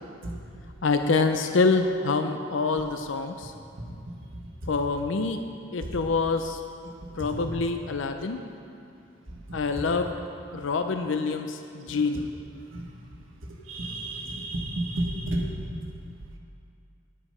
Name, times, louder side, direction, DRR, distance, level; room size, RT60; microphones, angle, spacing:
voice 1, 0.8-3.5 4.7-5.4 5.7-6.6 7.2-8.4 9.5-10.2 10.5-12.3, left 4 dB, 75° left, 7 dB, 0.5 m, -26 dB
voice 2, 13.7-15.4, right 1 dB, 90° right, 0 dB, 1.5 m, -30 dB
9.9 x 9.9 x 5.4 m, 2.5 s
head